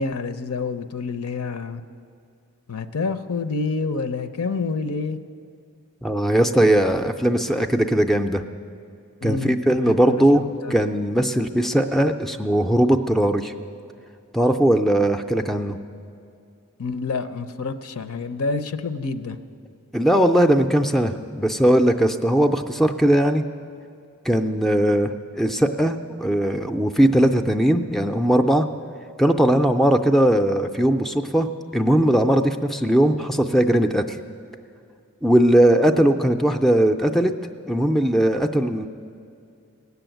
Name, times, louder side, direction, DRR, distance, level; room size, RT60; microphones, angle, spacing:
voice 1, 0.0-1.8 2.7-5.2 9.2-10.7 16.8-19.4, left 4 dB, 70° left, 11 dB, 0.6 m, -28 dB
voice 2, 6.0-8.4 9.2-10.4 10.7-13.5 14.3-15.8 19.9-23.4 24.3-28.7 29.2-31.5 31.7-34.2 35.2-37.3 37.7-38.9, right 1 dB, ahead, 7 dB, 0.4 m, -19 dB
17.0 x 6.9 x 9.1 m, 2.5 s
head